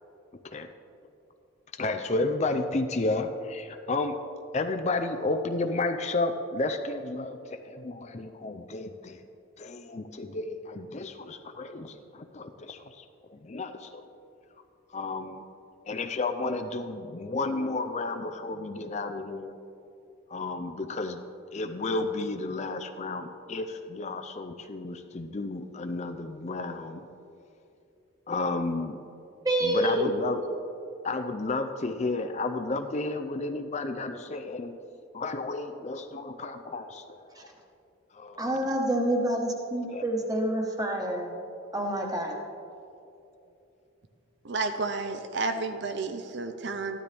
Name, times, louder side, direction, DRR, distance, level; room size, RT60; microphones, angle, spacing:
voice 1, 1.7-4.2 4.5-9.2 9.6-14.0 14.9-15.4 15.9-19.5 20.3-21.2 21.5-27.0 28.3-29.0 29.6-30.4 31.0-34.8 35.1-37.5 38.1-38.6 39.9-40.0, left 2 dB, 30° left, 7 dB, 0.5 m, -32 dB
voice 2, 29.4-30.1 37.3-37.4 38.4-41.3 41.7-42.3, right 1 dB, 20° right, 1 dB, 1.3 m, -27 dB
voice 3, 44.4-47.0, right 3 dB, 55° right, 7 dB, 0.6 m, -31 dB
14.0 x 12.0 x 3.4 m, 2.8 s
head